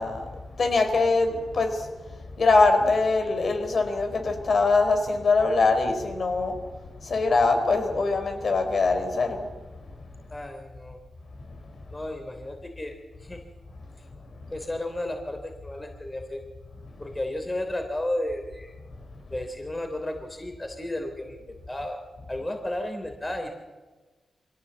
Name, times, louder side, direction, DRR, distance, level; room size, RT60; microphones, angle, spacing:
voice 1, 0.0-6.6 7.0-9.5 11.5-11.6, left 3 dB, 60° left, 6 dB, 4.4 m, -23 dB
voice 2, 10.3-11.0 11.9-13.4 14.5-16.4 17.0-18.7 19.3-22.0 22.3-23.5, left 1 dB, 25° left, 5 dB, 3.3 m, -33 dB
23.5 x 17.0 x 8.1 m, 1.3 s
supercardioid pair, 45°, 0 cm